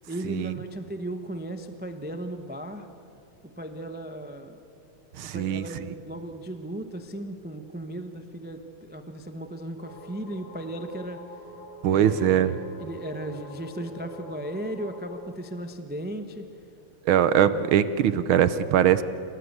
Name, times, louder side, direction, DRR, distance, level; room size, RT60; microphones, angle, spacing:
voice 1, 0.1-2.9 3.4-4.6 5.2-11.2 11.9-16.5, right 1 dB, 10° right, 7 dB, 0.5 m, -36 dB
voice 2, 5.2-5.9 11.8-12.5 17.1-19.0, right 10 dB, 75° right, 13 dB, 1.5 m, -22 dB
sound 1, 9.8-15.1, left 1 dB, 25° left, 7.6 m, -45 dB
28.5 x 18.0 x 8.1 m, 2.8 s
omnidirectional pair, 2.4 m